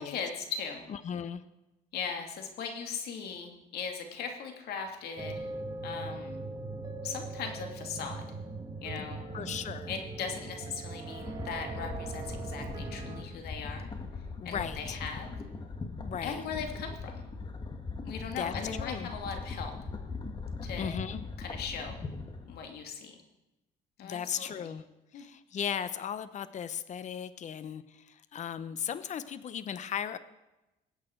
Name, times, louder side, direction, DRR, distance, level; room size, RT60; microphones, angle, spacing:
voice 1, 0.0-0.9 1.9-5.5 5.8-6.4 7.0-8.3 8.8-9.2 9.9-13.9 14.4-15.3 16.2-17.3 18.0-19.7 20.6-21.0 21.4-22.0 22.5-23.2 24.0-24.7 25.1-25.2, left 6 dB, 70° left, 3 dB, 2.6 m, -39 dB
voice 2, 0.9-1.4 9.0-9.1 9.3-9.9 14.4-15.0 16.0-16.4 18.4-18.5 18.8-19.1 20.8-21.2 24.0-24.8 25.1-30.2, left 8 dB, 45° left, 13 dB, 0.9 m, -36 dB
sound 1, 5.2-13.2, right 3 dB, 25° right, 1.7 m, -40 dB
sound 2, 11.1-22.6, left 3 dB, 25° left, 1.9 m, -40 dB
20.5 x 8.5 x 4.6 m, 0.99 s
cardioid pair, 110°, 17 cm